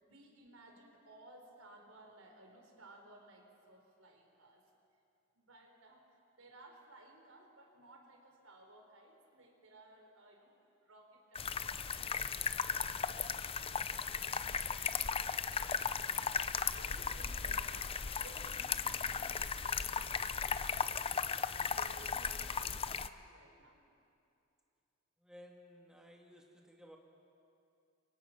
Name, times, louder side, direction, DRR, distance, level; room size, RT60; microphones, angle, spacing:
voice 1, 0.0-4.7 5.3-13.4 14.6-15.0 15.6-16.0 16.7-23.8, right 2 dB, 80° right, 2 dB, 4.1 m, -59 dB
sound 1, 11.3-23.1, left 6 dB, 25° left, 0.6 m, -36 dB
voice 2, 14.2-14.5 25.2-27.0, equal, 5° right, 0 dB, 1.8 m, -57 dB
29.0 x 23.5 x 6.0 m, 2.6 s
head